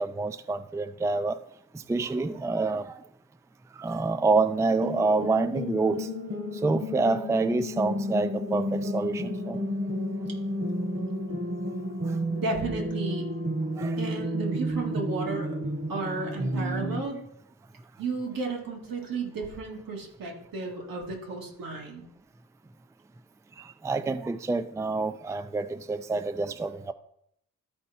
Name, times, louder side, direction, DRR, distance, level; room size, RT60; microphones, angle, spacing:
voice 1, 0.0-1.4 1.9-2.9 3.8-6.1 6.6-9.6 13.8-14.0 23.8-26.9, right 3 dB, 10° right, 11 dB, 0.4 m, -27 dB
sound 1, 4.8-17.0, equal, 40° right, 1.5 m, -31 dB
voice 2, 12.4-13.3 14.0-15.6 15.9-17.2 18.0-22.1, right 3 dB, 75° right, 0 dB, 2.2 m, -33 dB
13.0 x 4.4 x 4.2 m, 0.72 s
cardioid pair, 95°, 34 cm